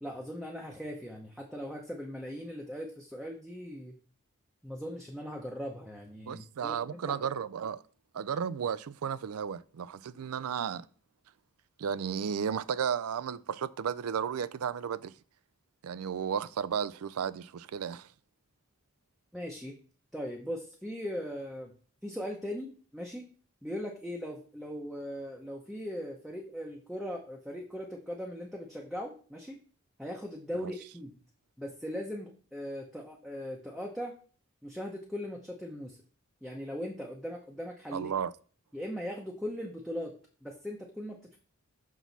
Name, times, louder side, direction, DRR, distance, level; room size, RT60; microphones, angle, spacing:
voice 1, 0.0-3.9 4.6-7.2 19.3-19.8 20.1-21.7 22.0-23.2 23.6-29.6 30.0-31.2 31.6-34.2 34.6-36.0 36.4-38.1 38.7-40.1 40.4-41.4, equal, ahead, 0.7 m, -39 dB
voice 2, 6.3-7.8 8.1-10.9 11.8-15.1 15.8-18.1 30.6-30.7 37.9-38.3, right 7 dB, 90° right, 0.4 m, -33 dB
6.1 x 6.1 x 4.0 m
head